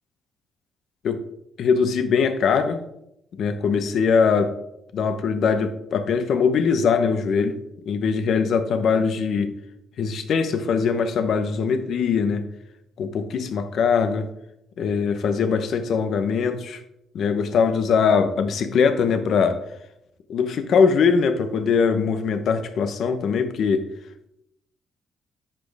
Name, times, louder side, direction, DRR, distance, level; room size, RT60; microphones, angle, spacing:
voice 1, 1.6-2.8 3.3-4.5 4.9-7.6 7.9-9.5 10.0-12.4 13.0-14.3 14.8-16.8 17.1-19.6 20.3-23.8, left 5 dB, 65° left, 9 dB, 1.0 m, -21 dB
10.0 x 6.5 x 3.4 m, 0.80 s
cardioid pair, 90°, 0 cm